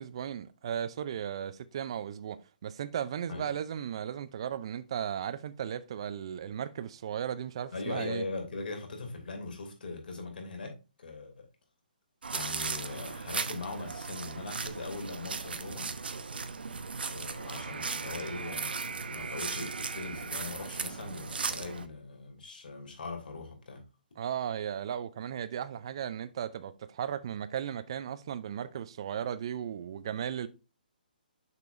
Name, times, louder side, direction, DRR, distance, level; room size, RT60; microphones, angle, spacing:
voice 1, 0.0-8.2 24.2-30.5, right 9 dB, 35° right, 0.5 m, -36 dB
voice 2, 7.7-11.3 12.3-16.0 17.1-23.8, left 3 dB, 70° left, 2.7 m, -40 dB
sound 1, 12.2-21.9, right 5 dB, 85° right, 0.9 m, -37 dB
6.8 x 6.7 x 2.6 m
hypercardioid pair, 170°, 5 cm